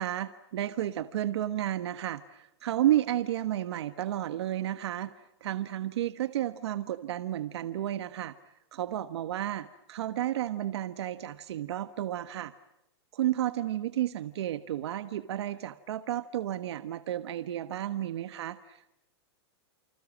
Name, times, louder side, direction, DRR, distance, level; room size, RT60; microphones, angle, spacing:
voice 1, 0.0-5.1 5.4-8.3 8.7-12.5 13.1-19.0, right 12 dB, 70° right, 12 dB, 1.3 m, -32 dB
29.5 x 26.0 x 7.4 m, 0.83 s
supercardioid pair, 170°, 15 cm